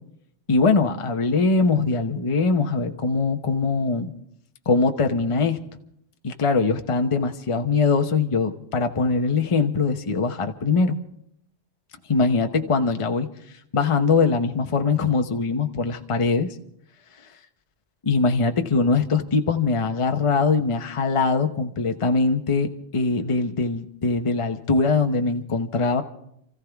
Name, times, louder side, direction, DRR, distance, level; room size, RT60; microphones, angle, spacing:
voice 1, 0.5-4.1 4.7-5.6 6.2-10.9 12.1-13.3 13.7-16.5 18.0-26.0, left 4 dB, 30° left, 6 dB, 0.8 m, -22 dB
28.5 x 14.5 x 3.5 m, 0.73 s
omnidirectional pair, 1.3 m